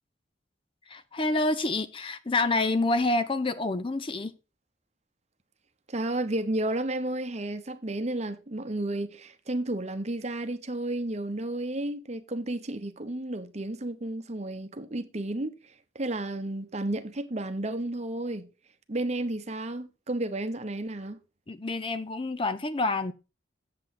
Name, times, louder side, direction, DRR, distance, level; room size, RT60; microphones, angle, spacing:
voice 1, 0.9-4.3 21.5-23.1, left 2 dB, 30° left, 0.5 m, -27 dB
voice 2, 5.9-15.5 15.9-18.5 18.9-21.2, right 1 dB, 35° right, 0.9 m, -32 dB
7.9 x 7.6 x 4.2 m
head